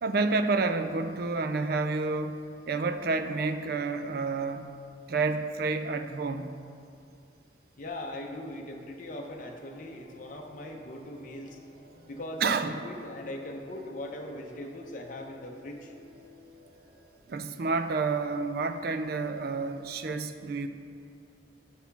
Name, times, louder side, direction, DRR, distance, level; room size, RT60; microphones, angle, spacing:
voice 1, 0.0-4.7 5.1-6.6 12.4-12.8 17.3-20.7, right 3 dB, 55° right, 9 dB, 0.4 m, -29 dB
voice 2, 7.8-11.6 12.1-12.6 12.8-15.9, left 1 dB, 45° left, 1 dB, 0.7 m, -40 dB
sound 1, 9.1-17.1, equal, 35° right, 0.9 m, -55 dB
6.2 x 5.6 x 5.8 m, 2.4 s
head